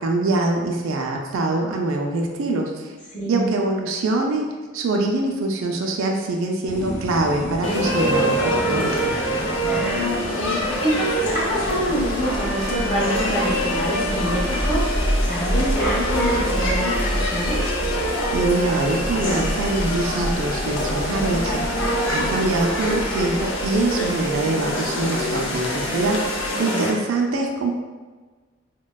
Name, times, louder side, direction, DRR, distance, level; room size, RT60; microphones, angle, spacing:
voice 1, 0.0-2.9 3.3-4.5 4.7-9.1 18.3-21.8 22.1-27.7, right 2 dB, 75° right, 1 dB, 0.4 m, -24 dB
voice 2, 3.1-3.5 9.6-17.6 26.5-27.0, equal, 35° left, -8 dB, 1.2 m, -26 dB
sound 1, 6.6-23.4, right 1 dB, 10° left, 0.8 m, -39 dB
sound 2, 7.6-26.9, equal, 70° left, 0.5 m, -25 dB
sound 3, 8.9-26.5, equal, 10° right, 0.5 m, -30 dB
4.0 x 2.2 x 2.2 m, 1.3 s
head